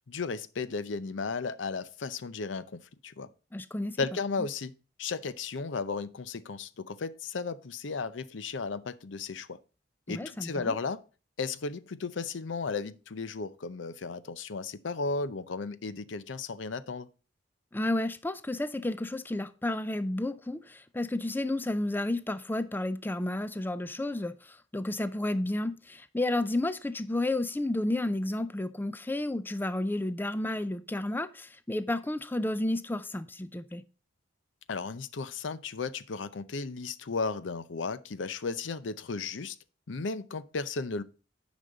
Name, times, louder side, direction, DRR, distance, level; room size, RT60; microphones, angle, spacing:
voice 1, 0.0-3.3 4.0-4.7 5.0-9.6 10.1-11.0 11.4-17.1 34.7-39.6 39.9-41.0, left 4 dB, 75° left, 0.6 m, -35 dB
voice 2, 3.5-4.0 10.1-10.7 17.7-33.8, left 1 dB, 10° left, 0.4 m, -31 dB
10.0 x 5.2 x 3.9 m
head